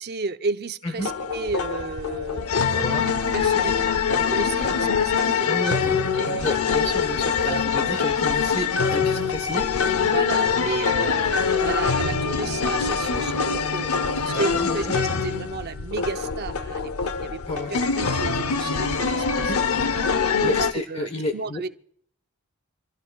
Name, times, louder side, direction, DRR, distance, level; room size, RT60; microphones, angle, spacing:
voice 1, 0.0-2.4 2.7-6.5 7.5-7.6 9.9-13.9 14.2-17.4 17.7-19.5 20.4-21.7, right 4 dB, 50° right, 0.7 m, -32 dB
sound 1, 1.0-20.7, left 6 dB, 80° left, 0.8 m, -24 dB
voice 2, 2.7-3.1 4.6-4.7 5.5-6.0 6.3-9.7 14.2-14.9 17.5-17.7 19.4-19.6 20.4-21.6, left 1 dB, 30° left, 1.3 m, -31 dB
26.5 x 16.5 x 2.4 m
head